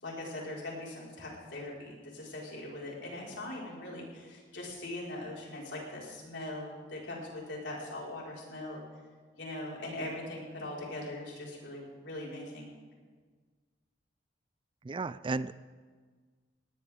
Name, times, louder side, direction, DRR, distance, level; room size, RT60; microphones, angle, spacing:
voice 1, 0.0-8.8 9.4-12.7, left 1 dB, 75° left, -4 dB, 5.1 m, -41 dB
voice 2, 14.8-15.6, right 3 dB, 30° right, 16 dB, 0.4 m, -34 dB
19.5 x 18.5 x 3.7 m, 1.5 s
head